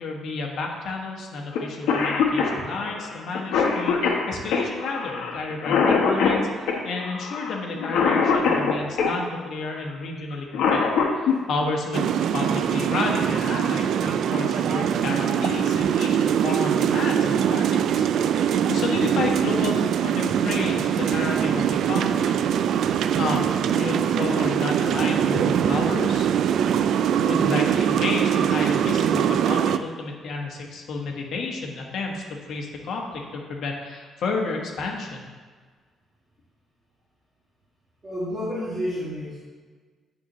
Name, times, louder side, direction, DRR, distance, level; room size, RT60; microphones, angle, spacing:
voice 1, 0.0-19.7 20.0-22.3 23.2-26.3 27.2-32.2 32.5-35.2, left 3 dB, 60° left, 0 dB, 1.4 m, -31 dB
Cough, 1.5-1.6 1.9-9.2 10.3-11.4 13.0-13.1 14.1-14.4 14.9-15.0 15.3-15.8, left 5 dB, 85° left, 1.0 m, -23 dB
sound 1, 11.9-29.8, right 9 dB, 65° right, 0.3 m, -22 dB
voice 2, 14.8-15.1 18.2-18.5 19.7-19.8 38.0-39.4, equal, 25° right, -9 dB, 1.9 m, -31 dB
9.3 x 6.6 x 3.1 m, 1.5 s
cardioid pair, 135°, 0 cm